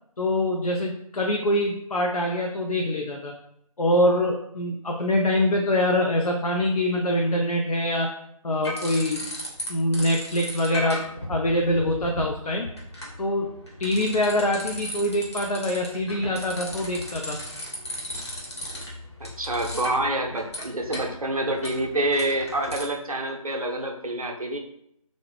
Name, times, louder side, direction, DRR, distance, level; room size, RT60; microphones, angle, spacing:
voice 1, 0.2-3.3 3.8-8.1 8.4-9.3 9.7-12.7 13.2-13.5 13.8-17.4, left 1 dB, 80° left, 1 dB, 0.4 m, -24 dB
sound 1, 8.6-9.7 9.9-22.8, left 1 dB, 45° left, 0.9 m, -36 dB
voice 2, 19.2-24.6, right 1 dB, 70° right, 2 dB, 0.6 m, -27 dB
2.6 x 2.0 x 3.2 m, 0.74 s
figure-of-eight pair, 165°, 19 cm